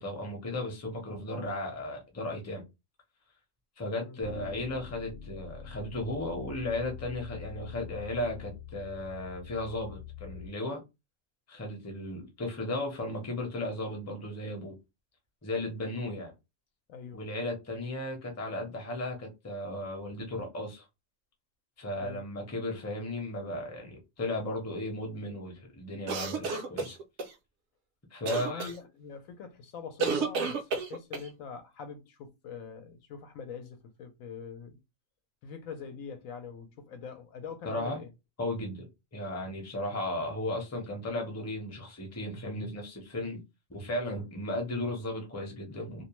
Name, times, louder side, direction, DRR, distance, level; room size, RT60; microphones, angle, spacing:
voice 1, 0.0-2.6 3.8-10.8 11.5-14.7 15.4-16.3 17.1-20.8 21.8-27.0 28.1-28.7 37.6-38.0 38.4-38.8 39.1-43.4 43.7-46.0, left 1 dB, 15° left, 0.6 m, -35 dB
sound 1, 4.2-10.5, left 9 dB, 55° left, 1.0 m, -44 dB
voice 2, 16.9-17.2 22.0-22.2 28.3-34.8 35.4-38.1 44.0-44.3, left 6 dB, 80° left, 1.0 m, -44 dB
sound 2, 26.1-27.3 28.3-28.7 30.0-31.3, right 4 dB, 65° right, 0.7 m, -31 dB
2.5 x 2.1 x 3.0 m
omnidirectional pair, 1.4 m